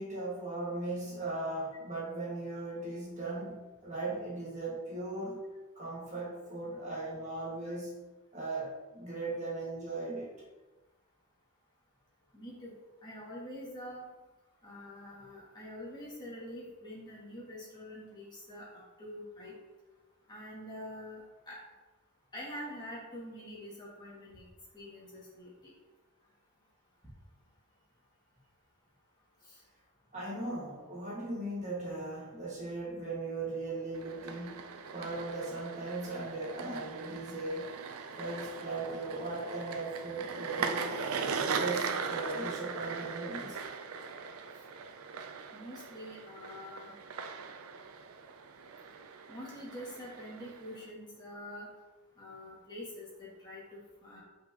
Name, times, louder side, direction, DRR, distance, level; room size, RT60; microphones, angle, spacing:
voice 1, 0.0-5.4 5.7-8.0 8.3-10.5 30.1-34.6 34.9-37.7 38.2-41.0 41.6-43.6, right 2 dB, 35° right, -5 dB, 1.7 m, -38 dB
voice 2, 12.3-12.7 13.0-14.1 14.6-18.7 19.0-19.5 20.3-21.6 22.3-24.5 24.7-25.7 29.4-29.6 45.5-46.9 49.3-51.7 52.2-54.2, left 1 dB, 20° left, -6 dB, 1.9 m, -45 dB
sound 1, 33.9-50.9, right 5 dB, 75° right, 0.5 m, -39 dB
7.6 x 5.8 x 2.9 m, 1.2 s
head